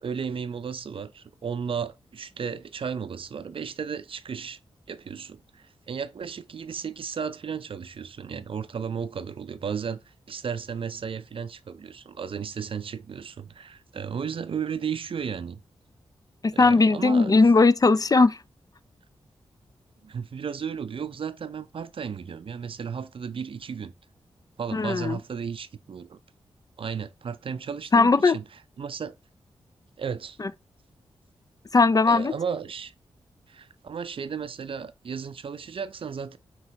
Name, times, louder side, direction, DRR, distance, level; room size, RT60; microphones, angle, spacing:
voice 1, 0.0-4.6 4.9-15.6 16.5-17.4 20.0-23.9 24.6-26.2 26.8-28.4 28.8-29.2 30.0-30.4 32.1-32.9 33.5-36.4, right 6 dB, 55° right, 0.5 m, -34 dB
voice 2, 16.4-18.4 24.7-25.2 27.9-28.4 30.4-30.5 31.7-32.3, left 3 dB, 35° left, 0.4 m, -19 dB
5.5 x 3.0 x 2.8 m
supercardioid pair, 45°, 11 cm